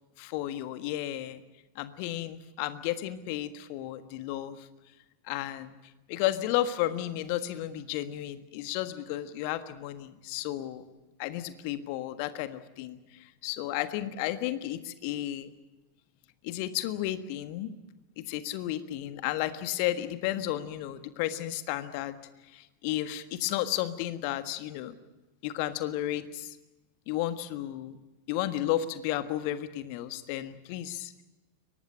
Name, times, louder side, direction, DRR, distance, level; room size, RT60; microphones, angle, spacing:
voice 1, 0.2-1.4 1.7-4.7 5.2-5.7 6.1-10.8 11.2-15.5 16.4-17.7 18.2-22.2 22.5-24.9 25.4-26.6 27.1-28.0 28.3-31.1, left 13 dB, 45° left, 11 dB, 1.5 m, -33 dB
23.5 x 19.0 x 8.9 m, 1.1 s
figure-of-eight pair, 90°, 0 cm